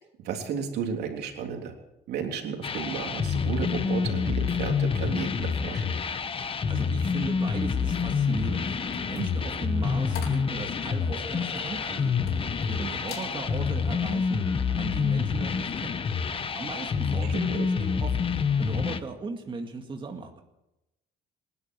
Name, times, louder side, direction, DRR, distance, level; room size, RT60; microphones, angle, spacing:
voice 1, 0.2-1.7 2.1-5.8 16.8-17.7, right 7 dB, 75° right, 3 dB, 3.4 m, -33 dB
sound 1, 2.6-19.0, left 6 dB, 30° left, 1.1 m, -27 dB
voice 2, 6.3-8.8 9.1-12.4 12.7-14.5 14.8-16.0 16.6-20.4, right 4 dB, 30° right, 3 dB, 2.0 m, -37 dB
sound 2, 7.2-15.8, left 1 dB, 15° left, 3.9 m, -47 dB
sound 3, 8.9-12.7 13.0-13.3 13.8-14.1, left 7 dB, 70° left, 3.9 m, -44 dB
27.0 x 11.0 x 4.7 m, 0.92 s
cardioid pair, 110°, 17 cm